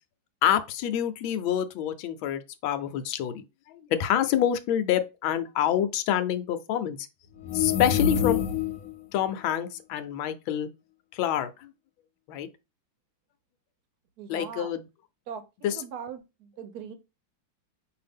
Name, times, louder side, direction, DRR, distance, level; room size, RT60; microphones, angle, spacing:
voice 1, 0.4-3.4 3.9-7.0 7.5-8.4 9.1-10.7 11.1-11.5 12.3-12.5 14.3-14.8 15.6-15.8, left 10 dB, 80° left, 1.4 m, -27 dB
sound 1, 7.4-8.9, left 8 dB, 65° left, 0.9 m, -26 dB
voice 2, 14.2-14.7 15.3-16.9, right 7 dB, 65° right, 1.0 m, -40 dB
5.2 x 2.7 x 3.5 m
omnidirectional pair, 2.2 m